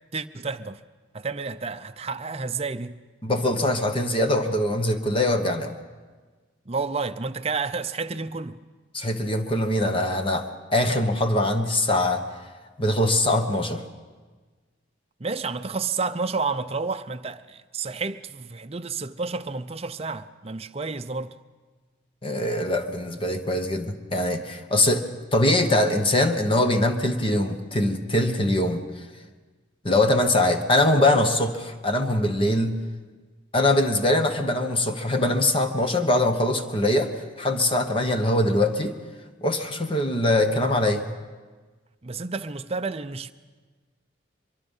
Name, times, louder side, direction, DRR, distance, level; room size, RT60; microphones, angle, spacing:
voice 1, 0.1-0.8 1.1-3.0 6.7-8.6 15.2-21.3 42.0-43.3, right 4 dB, 30° right, 0.6 m, -30 dB
voice 2, 3.2-5.8 8.9-12.2 12.8-13.8 22.2-25.0 25.3-28.8 29.8-32.8 33.5-38.9 39.4-41.0, left 1 dB, 25° left, 1.2 m, -22 dB
23.5 x 23.0 x 5.5 m
head